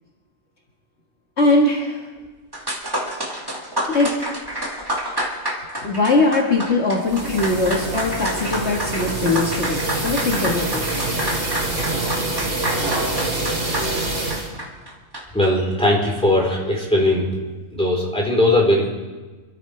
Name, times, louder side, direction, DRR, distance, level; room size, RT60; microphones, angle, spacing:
voice 1, 1.4-2.1 3.8-4.1 5.8-11.1, left 2 dB, 55° left, -1 dB, 1.8 m, -21 dB
sound 1, 2.2-2.3 2.5-15.5, equal, 15° right, 1.9 m, -29 dB
sound 2, 7.0-14.5, right 2 dB, 70° right, 3.4 m, -26 dB
voice 2, 15.3-17.2 17.7-18.9, left 1 dB, 5° left, -3 dB, 3.6 m, -19 dB
26.5 x 13.5 x 3.3 m, 1.3 s
omnidirectional pair, 1.4 m